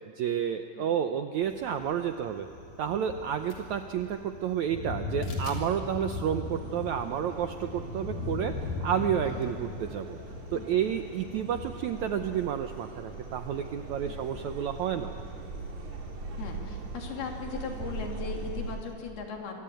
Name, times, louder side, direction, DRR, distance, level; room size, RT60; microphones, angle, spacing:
voice 1, 0.2-2.5 2.8-10.2 10.5-15.1, right 9 dB, 80° right, 7 dB, 1.7 m, -30 dB
Thunder, 1.4-18.9, left 3 dB, 70° left, 4.1 m, -40 dB
sound 1, 3.3-3.8 5.2-5.7 6.2-6.3 7.4-7.6 7.8-7.9 9.2-9.5, left 3 dB, 45° left, 4.3 m, -49 dB
sound 2, 6.4-18.8, right 3 dB, 55° right, 3.5 m, -41 dB
voice 2, 9.2-9.6 10.5-10.8 14.0-14.2 16.4-19.6, left 5 dB, 85° left, 1 dB, 4.8 m, -39 dB
26.0 x 23.5 x 9.1 m, 2.4 s
omnidirectional pair, 4.3 m